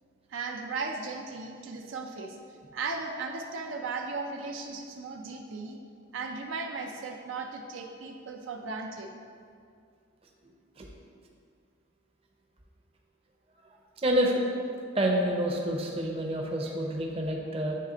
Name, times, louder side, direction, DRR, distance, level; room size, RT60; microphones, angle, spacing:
voice 1, 0.3-2.4 2.7-5.8 6.1-9.1, right 4 dB, 70° right, 2 dB, 0.4 m, -36 dB
voice 2, 14.0-14.4 14.9-17.8, right 1 dB, 30° right, 0 dB, 0.6 m, -28 dB
8.5 x 3.2 x 3.8 m, 2.3 s
head